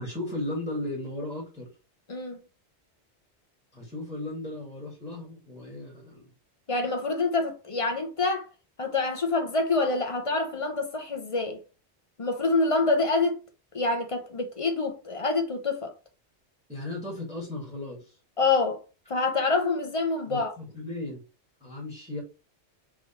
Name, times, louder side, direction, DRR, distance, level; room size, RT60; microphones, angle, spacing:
voice 1, 0.0-1.7 3.7-6.3 16.7-18.2 20.3-21.2 21.6-22.2, left 1 dB, 5° right, 1.6 m, -36 dB
voice 2, 2.1-2.4 6.7-8.5 8.8-11.6 12.2-13.4 13.7-15.9 18.4-18.8 19.1-20.5, left 3 dB, 35° left, 0.8 m, -26 dB
3.5 x 3.1 x 4.2 m
omnidirectional pair, 1.1 m